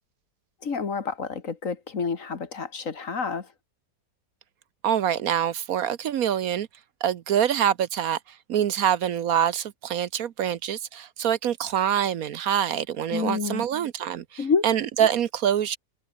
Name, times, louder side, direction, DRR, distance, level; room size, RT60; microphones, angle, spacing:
voice 1, 0.6-3.5 13.1-13.7 14.4-14.7, left 5 dB, 55° left, 2.2 m, -28 dB
voice 2, 4.8-6.7 7.0-8.2 8.5-15.8, right 9 dB, 65° right, 1.2 m, -25 dB
omnidirectional pair, 1.7 m